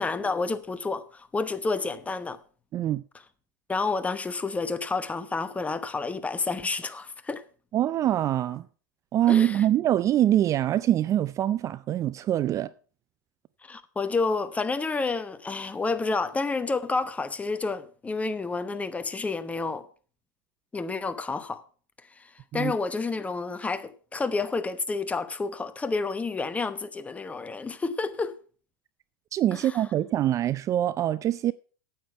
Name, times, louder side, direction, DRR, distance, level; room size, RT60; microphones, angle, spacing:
voice 1, 0.0-2.4 3.7-7.4 9.3-9.6 13.6-19.8 20.7-21.6 22.2-28.3 29.5-29.6, left 3 dB, 15° left, 1.0 m, -30 dB
voice 2, 2.7-3.0 7.7-8.7 9.1-12.7 22.5-22.7 29.3-31.5, right 12 dB, 30° right, 0.4 m, -24 dB
9.2 x 8.7 x 5.7 m
hypercardioid pair, 100°, 10 cm